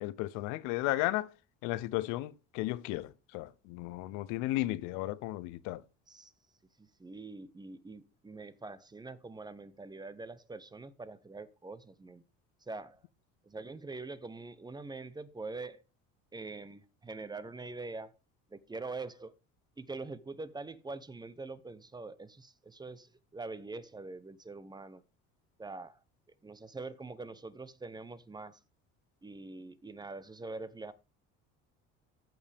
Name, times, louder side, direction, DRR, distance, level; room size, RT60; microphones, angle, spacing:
voice 1, 0.0-1.3 1.6-5.8, left 17 dB, 85° left, 0.7 m, -34 dB
voice 2, 6.8-12.2 12.6-13.0 13.4-15.8 16.3-18.1 18.5-19.3 19.8-25.0 25.6-26.0 26.4-28.6 29.2-30.9, right 3 dB, 15° right, 0.8 m, -44 dB
15.0 x 5.3 x 3.5 m
cardioid pair, 105°, 29 cm